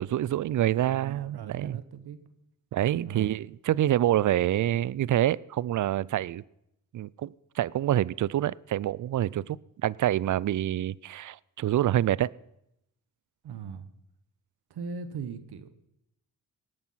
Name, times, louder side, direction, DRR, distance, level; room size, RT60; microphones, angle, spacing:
voice 1, 0.0-1.8 2.7-6.4 6.9-12.3, right 12 dB, 50° right, 0.5 m, -27 dB
voice 2, 0.8-2.2 3.0-3.3 13.4-13.9 14.7-15.7, right 6 dB, 70° right, 1.3 m, -39 dB
19.5 x 8.7 x 5.7 m
supercardioid pair, 55°, 40 cm